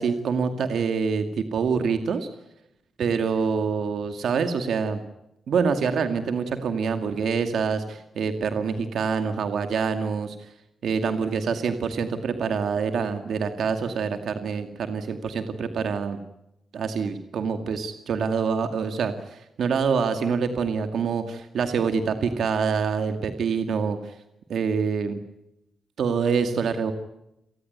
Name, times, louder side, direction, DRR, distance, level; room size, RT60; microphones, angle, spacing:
voice 1, 0.0-2.3 3.0-5.0 5.5-10.5 10.8-16.2 16.7-24.2 24.5-25.2 26.0-26.9, right 5 dB, 80° right, 7 dB, 2.2 m, -26 dB
29.0 x 19.0 x 9.5 m, 0.86 s
wide cardioid pair, 175°, 0 cm